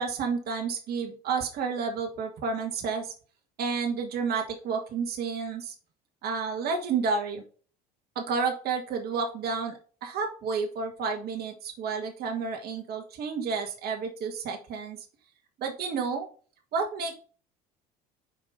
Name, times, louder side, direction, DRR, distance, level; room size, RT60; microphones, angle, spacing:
voice 1, 0.0-3.1 3.6-5.8 6.2-7.4 8.2-15.0 15.6-16.3 16.7-17.1, right 5 dB, 55° right, 2 dB, 1.7 m, -30 dB
5.2 x 5.1 x 5.4 m, 0.39 s
hypercardioid pair, 80°, 19 cm